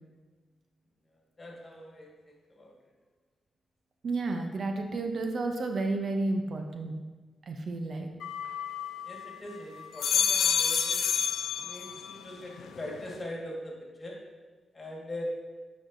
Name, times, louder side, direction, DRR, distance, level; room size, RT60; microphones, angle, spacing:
voice 1, 1.4-2.8 9.0-11.2 11.6-14.2 14.7-15.2, left 1 dB, 30° left, -1 dB, 1.5 m, -42 dB
voice 2, 4.0-6.9 7.5-8.1, right 2 dB, 60° right, 4 dB, 0.6 m, -31 dB
sound 1, 8.2-9.3 9.8-12.2 12.6-13.2, left 7 dB, 90° left, 0.4 m, -29 dB
8.5 x 4.5 x 2.6 m, 1.3 s
cardioid pair, 75°, 0 cm